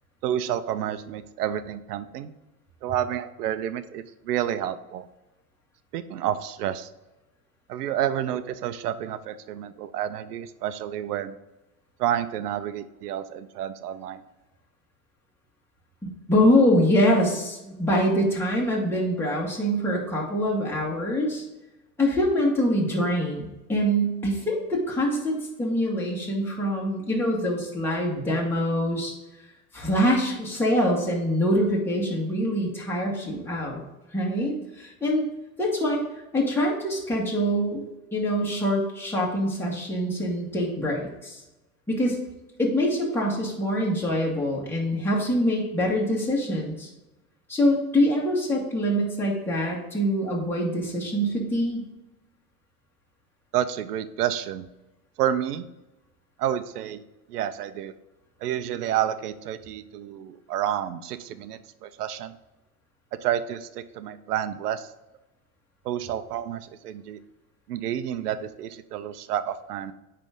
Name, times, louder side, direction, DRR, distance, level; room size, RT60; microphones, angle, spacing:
voice 1, 0.2-2.3 2.8-5.1 5.9-6.9 7.7-11.4 12.0-14.2 53.5-54.7 55.2-55.7 56.4-57.0 57.3-57.9 58.4-62.4 63.2-64.9 65.8-67.2 67.7-69.9, right 10 dB, 85° right, 13 dB, 0.6 m, -29 dB
voice 2, 16.0-21.4 22.0-29.1 29.7-33.8 34.1-35.3 35.6-36.0 36.3-37.8 38.1-41.4 41.9-42.2 42.6-46.9 47.5-51.9, equal, 5° left, -4 dB, 2.0 m, -24 dB
9.7 x 3.3 x 3.8 m, 1.0 s
hypercardioid pair, 85°, 46 cm